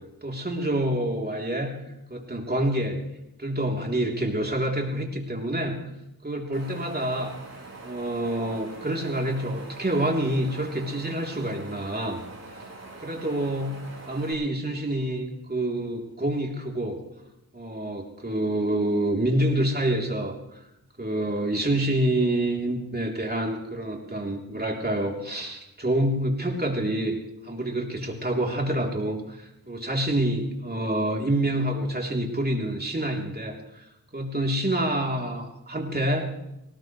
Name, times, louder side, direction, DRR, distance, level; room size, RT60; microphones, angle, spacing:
voice 1, 0.2-1.7 2.1-3.0 3.4-5.8 6.2-7.4 7.8-12.2 13.0-13.8 14.1-17.0 17.5-20.6 21.0-27.2 27.4-33.8 34.1-36.3, right 1 dB, 25° right, 0 dB, 3.5 m, -27 dB
Wind, 6.5-14.3, right 2 dB, 45° right, 4.4 m, -43 dB
19.0 x 18.5 x 3.3 m, 0.88 s
cardioid pair, 60°, 37 cm